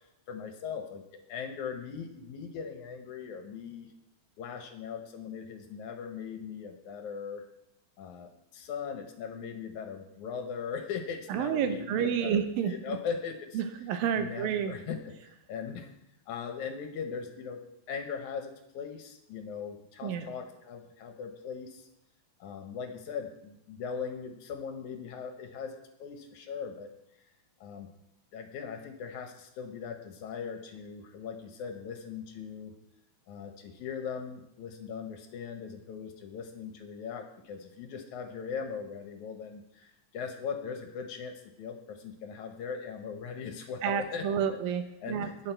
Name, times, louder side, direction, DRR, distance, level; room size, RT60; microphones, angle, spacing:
voice 1, 0.3-3.9 4.4-7.4 8.0-13.6 14.2-15.9 16.3-17.6 17.9-21.9 22.4-26.9 27.6-27.9 28.3-32.7 33.3-44.4 45.0-45.5, left 6 dB, 70° left, 6 dB, 2.2 m, -39 dB
voice 2, 11.3-13.0 13.5-14.7 20.0-20.3 43.8-45.5, right 8 dB, 90° right, 8 dB, 2.7 m, -30 dB
19.0 x 6.4 x 4.5 m, 0.83 s
omnidirectional pair, 4.0 m